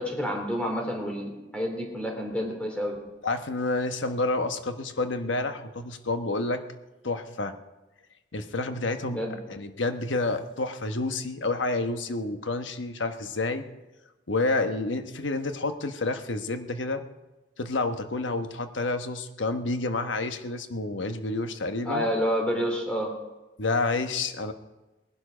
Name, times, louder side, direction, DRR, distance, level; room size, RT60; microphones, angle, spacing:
voice 1, 0.0-3.0 9.1-9.4 21.8-23.1, equal, 5° left, 1 dB, 2.8 m, -29 dB
voice 2, 3.2-6.6 7.0-7.5 8.3-9.2 9.5-13.6 14.3-17.0 17.6-22.1 23.6-24.5, left 2 dB, 85° left, 8 dB, 1.2 m, -29 dB
19.5 x 11.5 x 5.1 m, 1.1 s
head